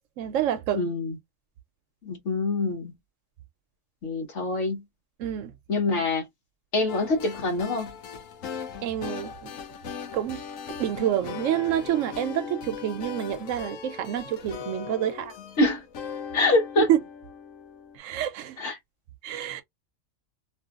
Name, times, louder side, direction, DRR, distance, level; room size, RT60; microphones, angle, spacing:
voice 1, 0.2-0.8 5.2-5.5 8.8-9.5 10.1-15.3 16.8-17.0 18.0-18.6 19.2-19.6, right 11 dB, 80° right, 1.0 m, -28 dB
voice 2, 0.7-1.2 2.0-2.9 4.0-4.8 5.7-6.3 6.7-7.9 15.6-15.8 16.3-16.9 18.6-18.8, left 2 dB, 65° left, 1.4 m, -25 dB
sound 1, 6.9-18.0, left 7 dB, 90° left, 1.0 m, -39 dB
2.8 x 2.7 x 2.3 m
omnidirectional pair, 1.3 m